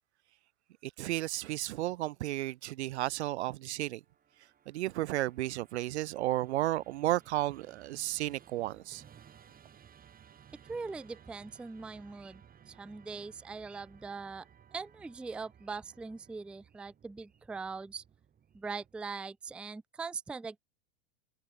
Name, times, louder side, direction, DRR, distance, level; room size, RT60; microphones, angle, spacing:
voice 1, 0.8-4.0 4.7-9.0, right 16 dB, 75° right, 0.5 m, -33 dB
Musical instrument, 4.0-19.3, right 8 dB, 25° right, 7.3 m, -59 dB
voice 2, 10.6-14.5 14.7-18.0 18.5-20.6, right 4 dB, 5° right, 0.4 m, -41 dB
hypercardioid pair, 105°, 34 cm